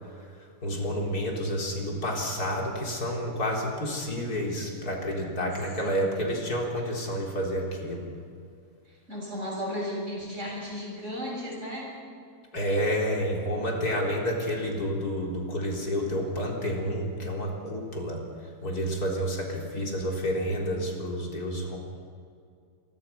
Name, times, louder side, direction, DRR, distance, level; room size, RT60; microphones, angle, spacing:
voice 1, 0.6-8.1 12.5-18.2 18.6-21.8, equal, 65° left, -1 dB, 4.4 m, -29 dB
voice 2, 5.8-6.3 8.9-11.9 19.7-20.4, equal, 45° right, -3 dB, 8.4 m, -36 dB
27.0 x 22.5 x 5.8 m, 2.3 s
omnidirectional pair, 1.8 m